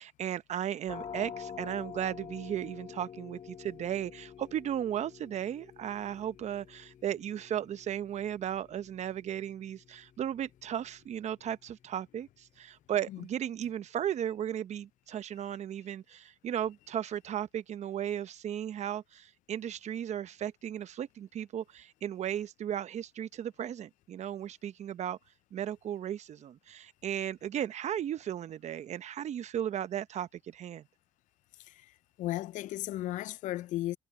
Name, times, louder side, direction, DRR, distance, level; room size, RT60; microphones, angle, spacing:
voice 1, 0.0-25.2 25.5-30.8, right 10 dB, 60° right, 1.0 m, -35 dB
sound 1, 0.9-12.4, left 7 dB, 45° left, 0.9 m, -48 dB
voice 2, 32.2-34.0, left 15 dB, 70° left, 0.5 m, -34 dB
supercardioid pair, 65°, 13 cm